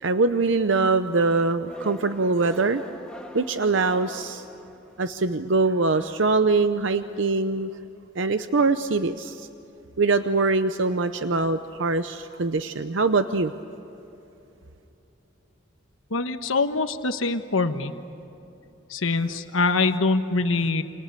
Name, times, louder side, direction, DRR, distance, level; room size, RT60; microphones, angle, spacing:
voice 1, 0.0-2.8 3.3-4.4 5.0-7.7 8.2-9.5 10.0-13.5, right 3 dB, 65° right, 10 dB, 0.8 m, -23 dB
sound 1, 1.7-5.2, equal, 5° left, 1.6 m, -43 dB
voice 2, 16.1-17.9 18.9-20.8, left 3 dB, 85° left, 8 dB, 1.2 m, -24 dB
29.5 x 28.5 x 6.8 m, 3.0 s
head